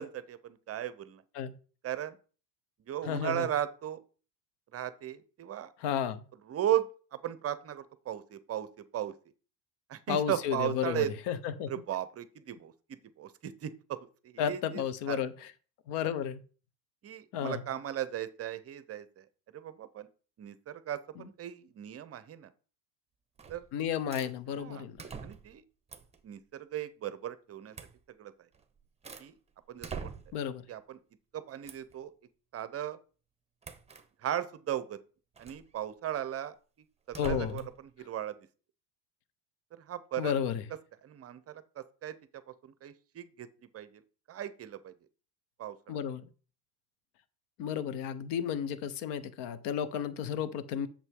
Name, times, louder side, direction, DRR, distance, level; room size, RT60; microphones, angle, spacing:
voice 1, 0.0-1.2 1.8-2.2 2.9-4.0 4.7-5.7 6.5-9.1 9.9-11.1 11.7-14.0 14.2-15.2 17.0-20.1 20.4-22.5 23.5-23.7 24.6-24.9 25.2-25.6 26.2-27.7 28.2-28.3 29.2-29.4 29.7-30.1 30.7-31.0 31.3-32.1 32.5-33.0 34.2-35.0 35.4-36.5 37.1-38.4 39.7-40.3 41.0-43.5 43.7-44.0 44.3-44.9 45.6-46.0, right 11 dB, 30° right, 15 dB, 0.7 m, -37 dB
voice 2, 3.1-3.5 5.8-6.2 10.1-11.7 14.4-15.3 15.9-16.4 17.3-17.6 23.7-25.0 30.3-30.6 37.2-37.6 40.2-40.6 45.9-46.3 47.6-50.9, left 8 dB, 55° left, 15 dB, 1.1 m, -32 dB
sound 1, 23.4-23.7 24.1-24.3 25.0-25.6 25.9-26.2 27.7-28.0 28.5-29.3 29.8-30.5 31.7-31.9 33.6-34.1 35.4-35.7 37.1-37.8, right 5 dB, 15° right, 1.0 m, -44 dB
8.0 x 6.8 x 3.7 m, 0.38 s
hypercardioid pair, 90°, 50 cm